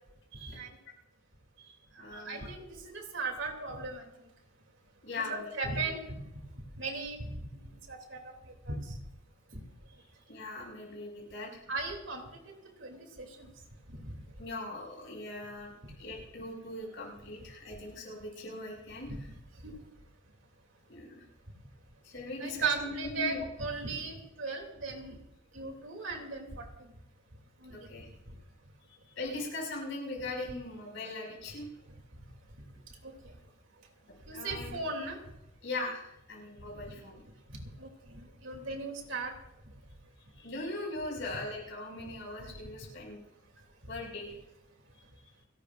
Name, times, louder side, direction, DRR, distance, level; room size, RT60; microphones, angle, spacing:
voice 1, 0.3-0.7 1.7-4.1 5.3-6.2 6.8-7.6 7.9-9.0 9.5-9.6 11.7-12.4 12.8-13.5 13.9-14.1 19.1-19.2 19.6-19.8 22.4-25.2 25.5-26.9 27.6-27.9 28.3-28.4 33.0-33.4 34.3-35.2 37.5-39.3 43.8-43.9, right 3 dB, 70° right, 2 dB, 2.8 m, -37 dB
voice 2, 2.0-2.5 5.0-5.8 10.3-11.6 14.4-19.1 20.9-21.2 22.0-23.4 27.7-28.1 29.1-31.7 34.3-34.8 35.6-37.2 40.3-43.2 43.9-44.4, left 2 dB, 70° left, -2 dB, 5.8 m, -40 dB
30.0 x 12.0 x 2.5 m, 0.88 s
head